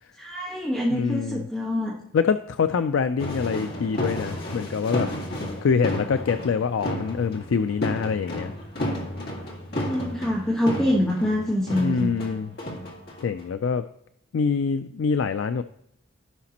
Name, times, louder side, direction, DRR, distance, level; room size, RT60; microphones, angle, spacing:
voice 1, 0.2-1.9 9.9-12.1, left 1 dB, 5° left, -6 dB, 1.4 m, -25 dB
voice 2, 0.9-1.4 2.1-5.1 5.6-8.5 11.8-12.5 13.2-13.9 14.3-15.6, left 5 dB, 75° left, 10 dB, 0.4 m, -25 dB
sound 1, 3.2-13.6, equal, 50° left, 2.0 m, -32 dB
15.5 x 5.9 x 2.9 m, 0.75 s
head